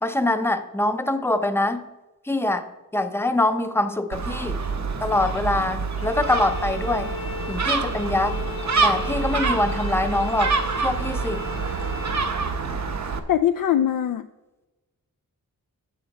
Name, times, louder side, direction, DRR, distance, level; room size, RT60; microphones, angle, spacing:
voice 1, 0.0-1.8 2.3-4.6 5.0-7.1 7.5-8.4 8.8-11.5, left 2 dB, 5° left, 8 dB, 0.6 m, -24 dB
Gull seagull, 4.1-13.2, right 4 dB, 50° right, 0.9 m, -26 dB
Bowed string instrument, 6.0-12.3, left 6 dB, 40° left, 0.9 m, -36 dB
voice 2, 13.3-14.3, left 10 dB, 65° left, 9 dB, 0.5 m, -21 dB
9.1 x 7.1 x 4.1 m, 1.1 s
wide cardioid pair, 105°, 35 cm